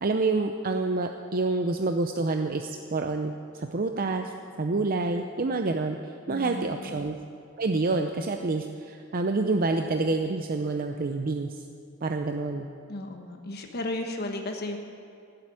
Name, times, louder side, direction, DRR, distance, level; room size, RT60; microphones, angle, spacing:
voice 1, 0.0-4.3 4.6-7.1 7.6-11.6 12.0-12.7, right 3 dB, 45° right, 5 dB, 0.6 m, -28 dB
voice 2, 6.3-7.0 12.9-14.8, left 2 dB, 50° left, 3 dB, 1.3 m, -34 dB
16.0 x 7.9 x 9.8 m, 2.5 s
head